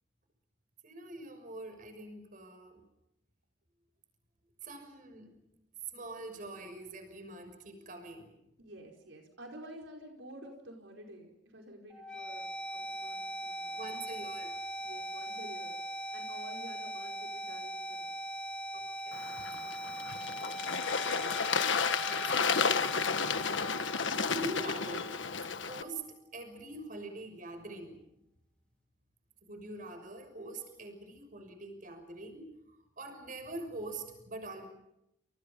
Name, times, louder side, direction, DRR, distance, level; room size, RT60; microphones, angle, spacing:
voice 1, 0.8-2.8 4.6-5.4 5.9-8.3 13.8-14.5 18.7-19.2 19.6-20.0 21.0-21.3 22.0-22.9 24.1-25.1 25.7-28.0 29.4-32.5 33.0-34.7, right 2 dB, 45° right, 7 dB, 6.3 m, -44 dB
voice 2, 8.6-13.8 14.8-15.8 16.1-18.2, right 1 dB, 85° right, 1 dB, 5.0 m, -50 dB
sound 1, 11.9-25.9, right 1 dB, 5° left, 2.4 m, -41 dB
Bird / Water, 19.1-25.8, left 5 dB, 85° left, 1.4 m, -32 dB
29.5 x 29.0 x 5.5 m, 0.82 s
head